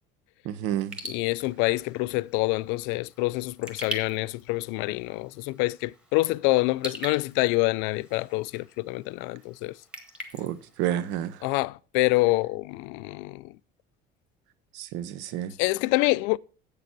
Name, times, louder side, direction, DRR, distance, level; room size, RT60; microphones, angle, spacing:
voice 1, 0.4-1.0 10.3-11.4 14.7-15.5, right 11 dB, 75° right, 0.9 m, -30 dB
Raindrop / Drip, 0.8-11.6, right 1 dB, 5° right, 1.2 m, -44 dB
voice 2, 1.1-9.8 11.4-13.5 15.6-16.4, left 22 dB, 75° left, 0.4 m, -26 dB
8.3 x 6.8 x 5.9 m
cardioid pair, 175°, 19 cm